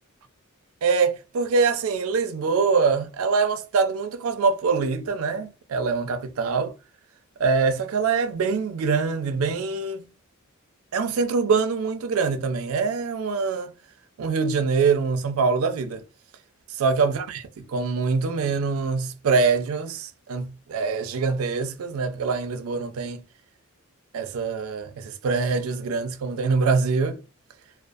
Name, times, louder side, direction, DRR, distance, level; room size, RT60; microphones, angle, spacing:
voice 1, 0.8-6.7 7.4-10.0 10.9-13.7 14.2-16.0 16.7-23.2 24.1-27.2, right 4 dB, 80° right, 0.4 m, -24 dB
2.5 x 2.3 x 2.3 m
head